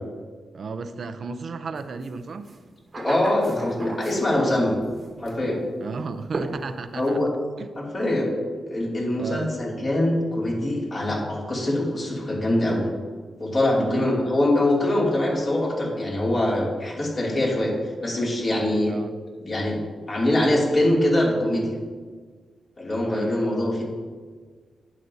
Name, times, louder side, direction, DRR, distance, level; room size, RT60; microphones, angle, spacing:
voice 1, 0.5-2.5 5.8-7.2 7.6-7.7 9.2-9.5 13.8-14.1 18.9-19.1 23.1-23.4, right 4 dB, 60° right, 10 dB, 0.5 m, -33 dB
sound 1, 2.0-2.1 2.4-4.5 4.8-5.4 6.3-7.1, right 3 dB, 40° right, 1.2 m, -35 dB
voice 2, 2.9-4.8 5.2-5.6 6.9-7.3 7.8-8.4 8.7-12.9 13.4-17.7 18.0-19.0 19.4-19.8 20.1-21.8 22.8-23.8, left 1 dB, 45° left, -4 dB, 2.6 m, -23 dB
11.0 x 8.4 x 2.7 m, 1.5 s
cardioid pair, 90°, 0 cm